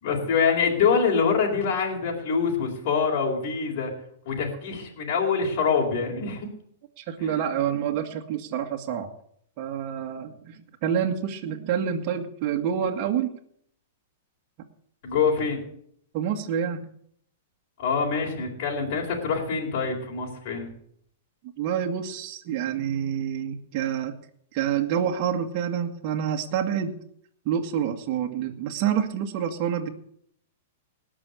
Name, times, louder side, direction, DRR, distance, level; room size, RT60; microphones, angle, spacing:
voice 1, 0.0-3.9 4.3-6.5 7.2-7.4 15.0-15.6 17.8-20.7, left 5 dB, 55° left, 0 dB, 4.2 m, -25 dB
voice 2, 7.0-9.1 9.6-13.3 16.1-16.9 21.6-24.1 24.5-27.0 27.5-29.9, right 8 dB, 45° right, 3 dB, 1.9 m, -27 dB
18.5 x 6.3 x 8.4 m, 0.67 s
hypercardioid pair, 125°, 0 cm